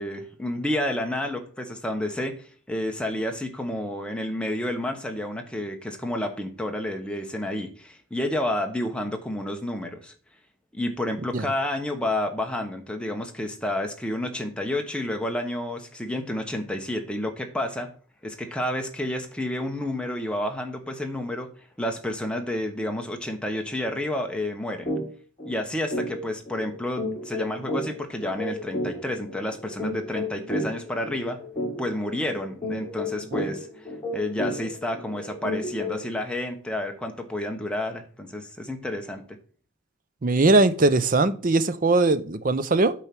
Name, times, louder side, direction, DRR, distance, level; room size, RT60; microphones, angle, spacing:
voice 1, 0.0-10.1 10.7-17.9 18.2-21.5 21.8-24.9 25.4-31.4 31.8-33.9 34.1-39.2, left 1 dB, 5° left, 3 dB, 1.0 m, -30 dB
sound 1, 24.9-25.0 25.4-25.5 25.9-36.1, left 1 dB, 20° left, 4.8 m, -32 dB
voice 2, 40.2-42.9, right 2 dB, 40° right, 13 dB, 0.6 m, -20 dB
8.9 x 4.6 x 6.0 m, 0.43 s
head